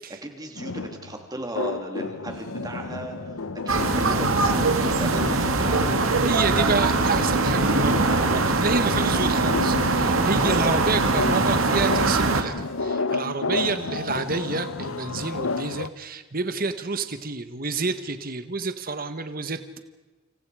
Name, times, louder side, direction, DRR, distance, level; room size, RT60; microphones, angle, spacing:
voice 1, 0.1-3.3 3.6-6.0 10.4-10.8, right 1 dB, 20° right, 3 dB, 2.9 m, -35 dB
sound 1, 0.6-15.9, left 3 dB, 85° left, 0.9 m, -32 dB
sound 2, 3.7-12.4, right 3 dB, 80° right, 2.2 m, -22 dB
voice 2, 6.2-19.8, right 3 dB, 45° right, 9 dB, 1.4 m, -29 dB
29.0 x 27.5 x 5.0 m, 1.2 s
head